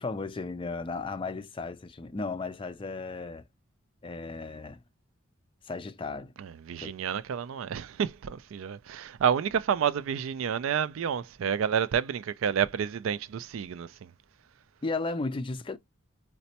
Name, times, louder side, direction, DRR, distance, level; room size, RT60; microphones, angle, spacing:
voice 1, 0.0-3.4 4.0-4.8 5.6-6.3 6.8-6.9 14.8-15.8, left 3 dB, 25° left, 0.4 m, -35 dB
voice 2, 6.4-14.1, right 8 dB, 75° right, 0.3 m, -29 dB
4.0 x 2.2 x 2.7 m
head